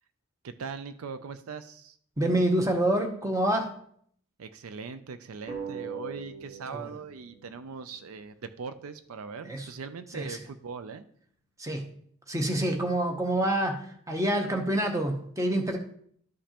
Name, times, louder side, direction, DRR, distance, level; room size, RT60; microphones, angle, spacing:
voice 1, 0.4-2.0 4.4-11.0, right 5 dB, 70° right, 11 dB, 0.4 m, -40 dB
voice 2, 2.2-3.7 6.7-6.9 9.4-9.7 10.1-10.4 11.6-11.8 12.3-15.8, right 1 dB, 15° right, 3 dB, 0.8 m, -27 dB
sound 1, 5.5-8.7, right 6 dB, 35° right, 2.4 m, -42 dB
12.5 x 5.1 x 2.9 m, 0.64 s
head